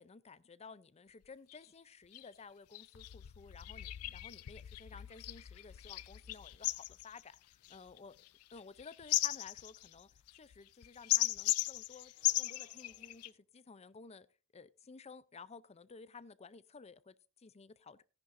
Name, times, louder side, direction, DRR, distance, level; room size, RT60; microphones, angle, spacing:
voice 1, 0.0-7.4 7.7-8.2 8.5-12.1 12.4-14.3 14.5-18.0, left 4 dB, 30° left, 0.5 m, -54 dB
sound 1, 1.2-1.3 1.5-1.7 2.1-2.3 2.7-13.3, left 17 dB, 80° left, 0.4 m, -37 dB
sound 2, 12.1-13.5, right 1 dB, 30° right, 4.0 m, -69 dB
16.0 x 10.5 x 2.6 m
head